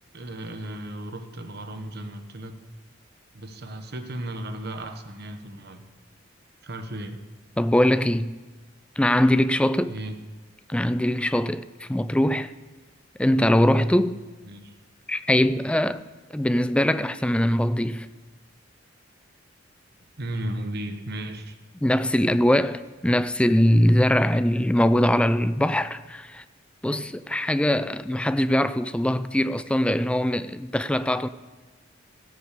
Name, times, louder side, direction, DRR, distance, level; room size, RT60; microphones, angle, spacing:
voice 1, 0.1-2.6 3.3-5.8 6.6-7.2 9.9-10.1 14.4-14.7 20.2-21.6, right 1 dB, 55° right, 1.2 m, -35 dB
voice 2, 7.6-8.3 9.0-9.9 10.7-12.5 13.2-14.2 15.1-16.0 16.3-18.1 21.8-26.4 26.8-31.3, left 1 dB, 5° left, 0.4 m, -22 dB
16.0 x 6.4 x 6.7 m
head